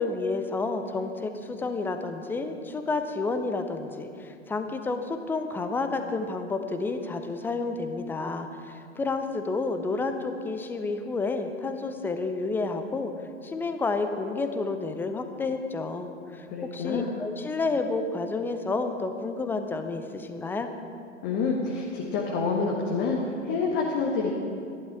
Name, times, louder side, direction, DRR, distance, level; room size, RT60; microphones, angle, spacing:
voice 1, 0.0-13.1 13.4-20.7, left 3 dB, 5° left, 7 dB, 0.5 m, -30 dB
voice 2, 16.5-17.1 21.2-24.3, left 4 dB, 35° left, -1 dB, 1.5 m, -27 dB
13.5 x 11.0 x 4.8 m, 2.4 s
figure-of-eight pair, 100°, 36 cm